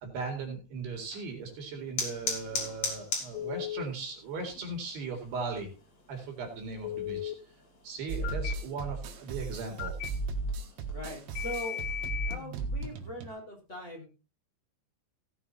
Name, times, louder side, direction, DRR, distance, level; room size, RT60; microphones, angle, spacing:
voice 1, 0.0-5.7 6.1-7.3 7.8-10.0, right 4 dB, 65° right, 3 dB, 4.3 m, -38 dB
sound 1, 0.9-12.1, left 4 dB, 40° left, 3.9 m, -42 dB
Telephone, 3.3-3.8 6.8-7.3 8.2-8.5 9.8-10.1 11.4-12.4, left 11 dB, 75° left, 2.7 m, -35 dB
sound 2, 8.1-13.3, right 3 dB, 85° right, 4.0 m, -35 dB
voice 2, 10.6-11.9 12.2-14.1, equal, 15° left, -1 dB, 4.3 m, -41 dB
17.0 x 7.1 x 4.2 m, 0.31 s
omnidirectional pair, 5.2 m